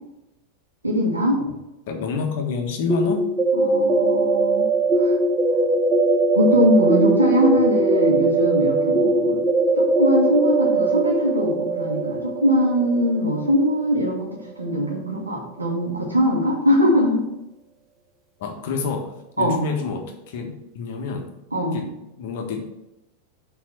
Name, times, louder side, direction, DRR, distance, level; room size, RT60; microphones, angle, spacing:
voice 1, 0.8-1.4 3.5-4.7 5.0-5.1 6.3-9.4 9.8-14.3 14.6-17.2 19.4-19.6 21.5-21.8, left 1 dB, 80° right, -2 dB, 2.4 m, -21 dB
voice 2, 1.9-3.3 18.4-21.3 21.7-22.7, left 5 dB, 50° left, 3 dB, 1.4 m, -28 dB
sound 1, 2.9-14.6, right 3 dB, 20° right, 1.2 m, -21 dB
6.5 x 4.7 x 6.1 m, 0.91 s
figure-of-eight pair, 90°, 0 cm